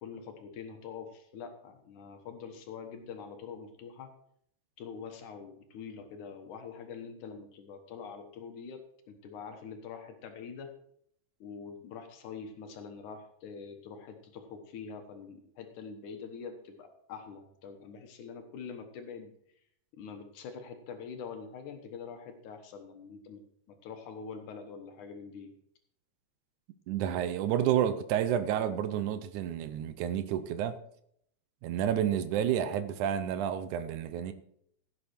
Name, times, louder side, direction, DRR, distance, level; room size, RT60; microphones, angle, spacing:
voice 1, 0.0-4.1 4.8-10.7 11.4-19.3 19.9-23.4 23.7-25.5, left 6 dB, 85° left, 6 dB, 2.7 m, -45 dB
voice 2, 26.9-30.8 31.6-34.3, right 10 dB, 90° right, 11 dB, 2.3 m, -30 dB
16.0 x 7.6 x 4.5 m, 0.68 s
omnidirectional pair, 3.4 m